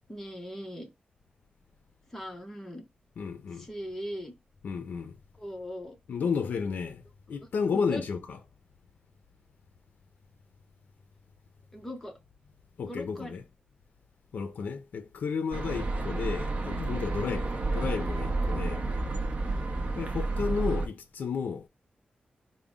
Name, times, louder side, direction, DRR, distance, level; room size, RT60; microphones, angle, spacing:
voice 1, 0.1-0.9 2.1-2.8 3.5-4.3 5.4-6.0 7.7-8.1 11.7-12.2 12.9-13.3 19.5-19.7, equal, 10° left, 0.9 m, -40 dB
voice 2, 3.2-3.7 4.6-5.2 6.1-7.0 7.3-8.4 12.8-13.4 14.3-18.9 19.9-21.7, left 5 dB, 85° left, 0.4 m, -32 dB
sound 1, 15.5-20.9, right 2 dB, 45° right, 0.6 m, -30 dB
3.8 x 2.0 x 3.5 m
wide cardioid pair, 145°, 3 cm